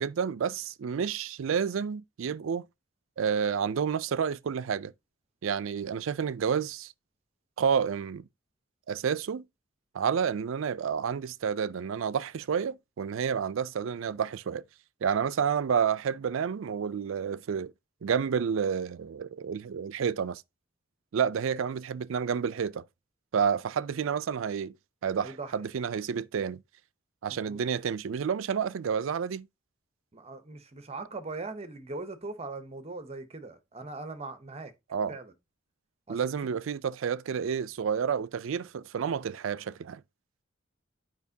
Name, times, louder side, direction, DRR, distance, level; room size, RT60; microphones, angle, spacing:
voice 1, 0.0-2.7 3.2-4.9 5.4-6.9 7.6-8.3 8.9-9.4 9.9-14.6 15.0-17.7 18.0-20.4 21.1-22.8 23.3-24.7 25.0-26.6 27.2-29.5 34.9-35.1 36.1-40.0, right 7 dB, 70° right, 0.4 m, -30 dB
voice 2, 25.2-25.7 27.3-27.6 30.1-34.7 35.1-35.3 36.1-36.3, right 3 dB, 30° right, 0.8 m, -40 dB
9.3 x 5.1 x 2.7 m
head